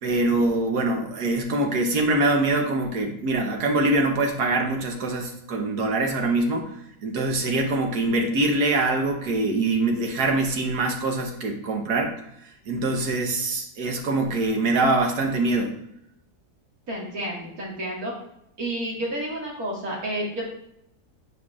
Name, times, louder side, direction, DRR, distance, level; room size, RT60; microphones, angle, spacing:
voice 1, 0.0-6.7 7.0-12.1 12.7-15.7, right 2 dB, 85° right, 2 dB, 1.6 m, -24 dB
voice 2, 16.9-18.2 18.6-20.5, right 1 dB, 65° right, -4 dB, 2.5 m, -30 dB
9.7 x 5.1 x 2.4 m, 0.78 s
omnidirectional pair, 1.6 m